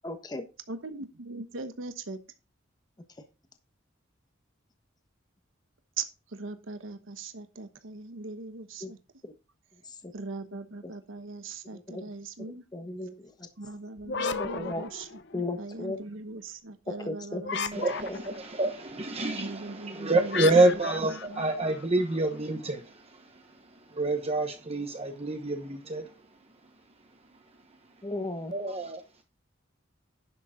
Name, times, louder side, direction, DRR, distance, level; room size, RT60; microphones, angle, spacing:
voice 1, 0.0-0.4 8.8-8.9 9.2-9.3 9.9-10.0 11.7-12.0 12.7-13.3 14.4-14.8 15.3-16.0 17.1-17.4 18.1-18.2 28.0-28.5, left 2 dB, 20° left, 1.2 m, -35 dB
voice 2, 0.7-2.2 6.0-9.0 10.1-12.6 13.6-18.2 19.3-21.5, right 3 dB, 80° right, 1.1 m, -40 dB
sound 1, 14.0-15.6 17.4-18.5 20.3-22.2, left 5 dB, 60° left, 0.9 m, -35 dB
voice 3, 17.7-23.4 23.9-26.0 28.5-29.0, right 2 dB, 30° right, 1.1 m, -27 dB
11.0 x 6.8 x 3.7 m
head